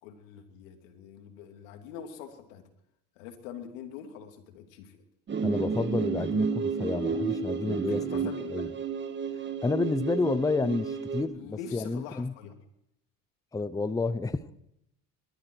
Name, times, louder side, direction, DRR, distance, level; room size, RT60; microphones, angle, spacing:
voice 1, 0.0-2.6 3.2-5.0 7.9-8.6 11.2-12.5, left 8 dB, 85° left, 4 dB, 2.8 m, -44 dB
sound 1, 5.3-11.2, right 5 dB, 30° right, 1.7 m, -31 dB
voice 2, 5.4-8.7 9.6-12.3 13.5-14.5, left 3 dB, 10° left, 14 dB, 0.7 m, -30 dB
21.0 x 13.5 x 4.7 m, 0.81 s
supercardioid pair, 95°, 37 cm